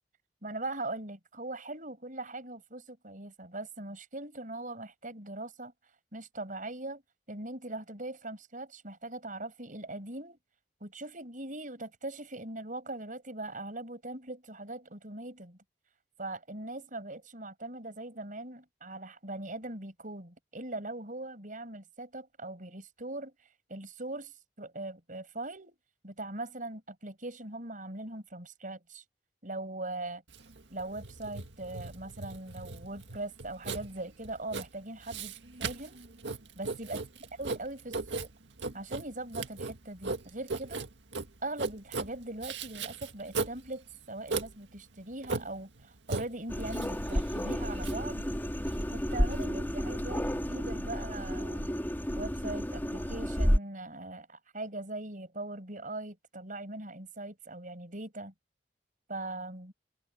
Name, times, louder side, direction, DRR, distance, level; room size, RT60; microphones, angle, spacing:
voice 1, 0.4-5.7 6.1-7.0 7.3-10.4 10.8-15.6 16.2-23.3 23.7-25.8 26.0-29.0 29.4-30.2 30.7-35.3 35.6-36.0 36.6-37.0 37.4-38.3 38.7-40.9 41.4-48.3 48.9-51.7 52.1-58.3 59.1-59.7, right 2 dB, 45° right, 6.9 m, -41 dB
Writing, 30.3-49.5, right 3 dB, 85° right, 1.9 m, -38 dB
sound 1, 46.5-53.6, equal, 10° left, 3.7 m, -31 dB
head